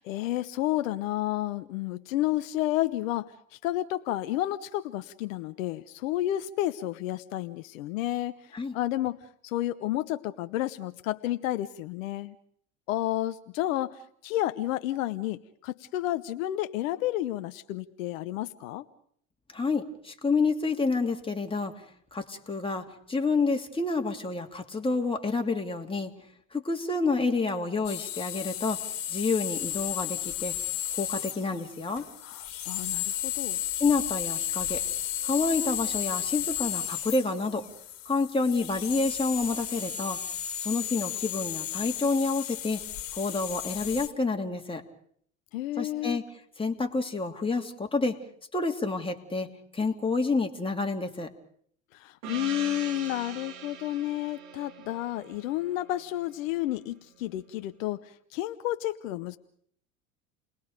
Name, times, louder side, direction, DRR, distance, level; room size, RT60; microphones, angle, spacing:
voice 1, 0.0-9.2 9.4-12.4 12.9-18.8 32.2-33.6 45.5-46.2 51.9-59.4, left 14 dB, 70° left, 11 dB, 1.0 m, -31 dB
voice 2, 19.5-21.8 22.1-26.1 26.5-28.8 29.1-30.5 31.0-32.1 33.8-34.8 35.2-37.6 38.1-40.2 40.6-42.8 43.1-44.8 45.8-46.2 46.6-48.2 48.5-49.5 49.7-51.3, left 3 dB, 15° left, 3 dB, 2.7 m, -28 dB
sound 1, 27.8-44.1, left 11 dB, 55° left, 2.3 m, -34 dB
Gong, 52.2-56.6, right 8 dB, 65° right, 2.7 m, -42 dB
30.0 x 20.5 x 5.2 m, 0.64 s
hypercardioid pair, 75°, 41 cm